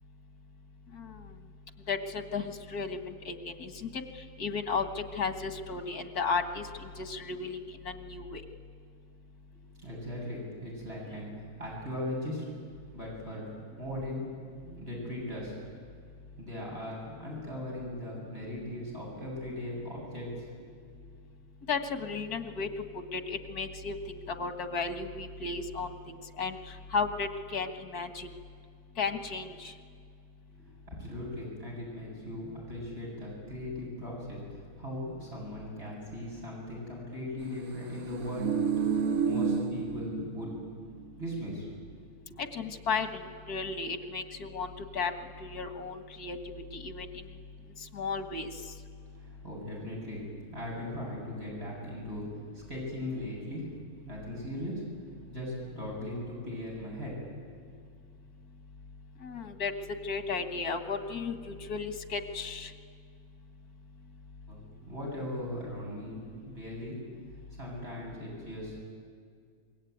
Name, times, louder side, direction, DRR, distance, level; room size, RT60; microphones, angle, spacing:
voice 1, 0.9-1.3 1.9-8.4 21.7-28.3 29.0-29.8 42.4-47.4 47.8-48.7 59.2-62.7 66.2-66.3, left 4 dB, 80° left, 7 dB, 2.2 m, -35 dB
voice 2, 9.8-12.5 12.9-13.5 13.8-14.3 14.6-15.5 16.4-20.5 30.6-38.5 39.2-40.5 41.2-42.4 49.1-50.2 50.5-52.2 52.5-53.6 54.0-54.8 55.3-57.5 64.5-64.6 64.9-67.0 67.5-68.8, left 1 dB, 40° right, -4 dB, 8.4 m, -39 dB
Vocal Train Call, 38.1-40.7 41.0-41.1, right 6 dB, 70° right, 1.5 m, -30 dB
26.5 x 22.0 x 9.5 m, 2.1 s
omnidirectional pair, 1.6 m